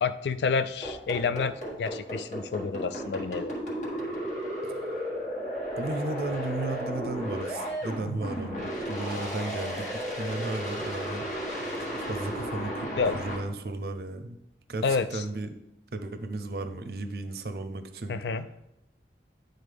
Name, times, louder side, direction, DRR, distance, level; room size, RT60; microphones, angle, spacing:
voice 1, 0.0-3.5 13.0-13.2 14.8-15.2 18.1-18.5, left 5 dB, 70° left, 12 dB, 0.4 m, -29 dB
sound 1, 0.8-13.4, equal, 40° left, 1.6 m, -34 dB
voice 2, 4.6-5.0 5.8-11.2 11.8-14.4 14.7-15.6 15.9-18.2, right 2 dB, 60° right, 9 dB, 0.5 m, -35 dB
10.0 x 3.9 x 3.4 m, 0.86 s
head